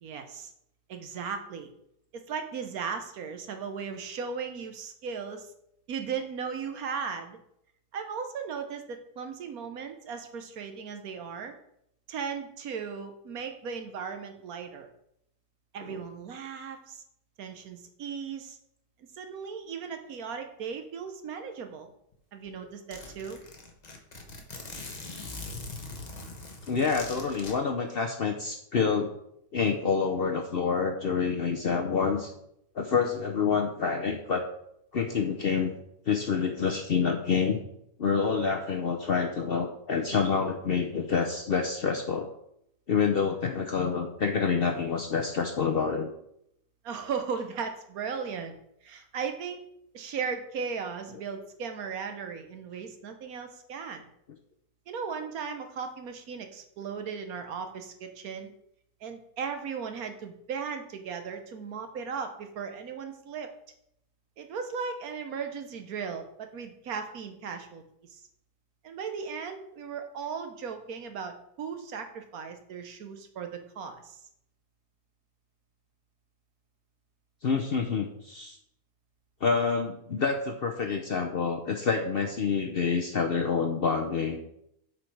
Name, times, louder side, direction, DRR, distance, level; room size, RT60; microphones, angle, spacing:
voice 1, 0.0-0.5 0.9-1.7 2.1-5.5 5.9-7.4 7.9-11.5 12.1-14.9 15.7-17.0 17.4-18.6 19.2-21.9 22.3-23.4 46.8-48.6 48.8-49.6 49.9-54.1 54.9-58.5 59.0-63.5 64.4-68.2 68.8-74.2, right 6 dB, 70° right, 6 dB, 1.3 m, -37 dB
Zipper (clothing), 22.1-22.2 22.5-22.6 22.9-27.5, left 3 dB, 30° left, 1.0 m, -41 dB
voice 2, 26.7-29.1 29.5-32.3 32.8-34.4 34.9-35.7 36.1-37.6 38.0-42.3 42.9-46.1 77.4-78.6 79.4-84.4, left 5 dB, 55° left, 3 dB, 0.7 m, -27 dB
7.6 x 4.9 x 4.7 m, 0.75 s
omnidirectional pair, 1.6 m